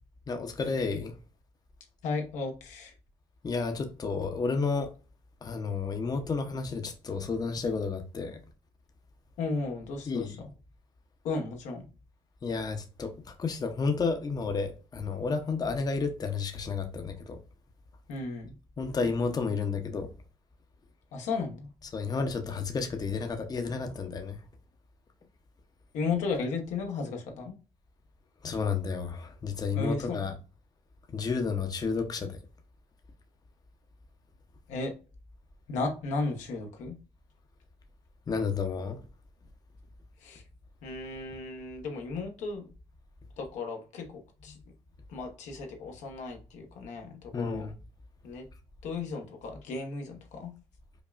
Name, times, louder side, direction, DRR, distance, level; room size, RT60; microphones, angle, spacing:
voice 1, 0.3-1.2 3.4-4.9 5.4-8.4 10.1-10.4 12.4-17.4 18.8-20.1 21.9-24.4 28.4-30.3 31.1-32.4 38.3-39.0 44.5-44.6 47.3-47.7, left 4 dB, 30° left, 0.7 m, -31 dB
voice 2, 2.0-2.9 9.4-10.4 11.2-11.9 18.1-18.5 21.1-21.7 25.9-27.5 29.7-30.2 34.7-34.9 35.7-37.0 40.2-40.4 40.8-42.7 43.4-44.6 45.1-47.7 48.2-48.5 48.8-50.5, left 4 dB, 80° left, 0.9 m, -34 dB
5.1 x 2.3 x 2.4 m
cardioid pair, 80°, 12 cm